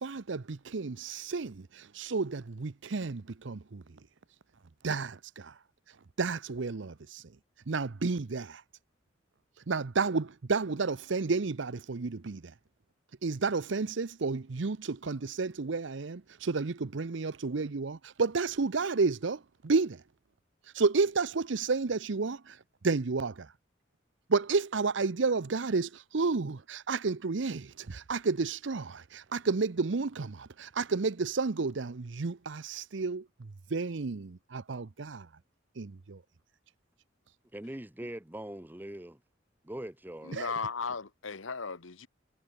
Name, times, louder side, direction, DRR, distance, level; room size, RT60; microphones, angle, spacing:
voice 1, 0.0-4.0 4.8-5.5 6.2-7.2 7.7-8.6 9.7-12.5 13.2-20.0 20.7-22.6 22.8-23.5 24.3-35.3 35.8-36.2 40.3-40.5, right 4 dB, 65° right, 0.7 m, -31 dB
voice 2, 37.5-39.2 39.6-40.4, right 1 dB, 10° right, 0.7 m, -41 dB
voice 3, 40.2-42.1, left 5 dB, 80° left, 1.4 m, -36 dB
head